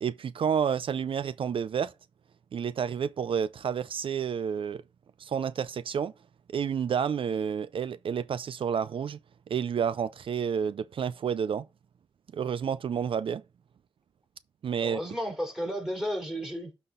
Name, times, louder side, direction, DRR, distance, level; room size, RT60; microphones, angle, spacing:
voice 1, 0.0-1.9 2.5-4.8 5.2-6.1 6.5-9.2 9.5-11.6 12.3-13.4 14.6-15.0, right 7 dB, 75° right, 0.4 m, -30 dB
voice 2, 14.8-16.7, equal, 5° right, 4.1 m, -33 dB
12.0 x 4.2 x 3.8 m
cardioid pair, 65°, 9 cm